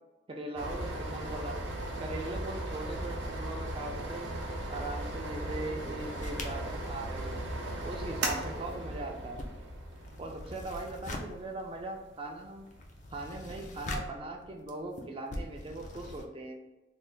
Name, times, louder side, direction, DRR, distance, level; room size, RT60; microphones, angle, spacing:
voice 1, 0.3-1.7 2.0-4.4 4.7-7.4 7.8-9.5 10.2-12.7 13.1-16.7, right 2 dB, 30° right, 2 dB, 0.4 m, -40 dB
sound 1, 0.6-13.0, right 1 dB, 70° right, 0.6 m, -37 dB
sound 2, 5.8-8.0 8.3-16.3, left 1 dB, 40° left, 0.4 m, -44 dB
3.2 x 2.0 x 3.8 m, 1.1 s
head